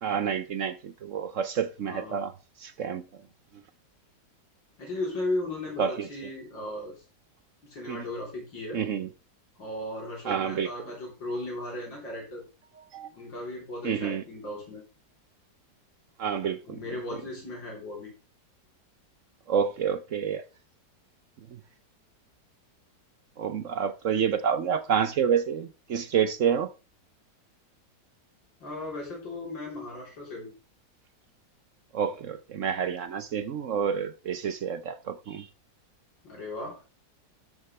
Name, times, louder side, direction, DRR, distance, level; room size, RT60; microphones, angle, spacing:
voice 1, 0.0-2.3 2.6-3.2 5.8-6.1 7.9-8.0 8.7-9.1 10.2-10.7 12.9-13.1 13.8-14.2 16.2-16.8 19.5-20.4 21.5-21.6 23.4-26.7 31.9-35.5, right 7 dB, 60° right, 0.9 m, -28 dB
voice 2, 1.8-2.2 4.8-7.0 7.6-8.8 9.6-12.4 13.1-14.8 16.6-18.1 28.6-30.5 36.2-36.8, left 2 dB, 80° left, 4.3 m, -36 dB
12.5 x 8.1 x 3.3 m
omnidirectional pair, 2.0 m